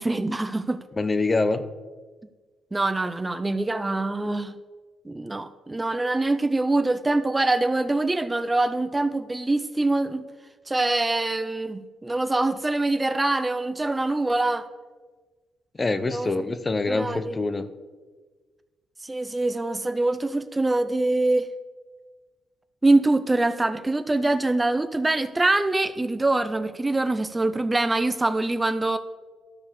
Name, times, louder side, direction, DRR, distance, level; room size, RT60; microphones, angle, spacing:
voice 1, 0.0-0.8 2.7-4.5 5.1-10.2 10.7-14.7 16.1-16.3 16.9-17.4 19.0-21.5 22.8-29.0, right 2 dB, 15° right, 11 dB, 0.5 m, -24 dB
voice 2, 1.0-1.6 15.8-17.7, left 3 dB, 25° left, 12 dB, 0.6 m, -25 dB
12.5 x 4.8 x 6.9 m, 1.4 s
cardioid pair, 105°, 0 cm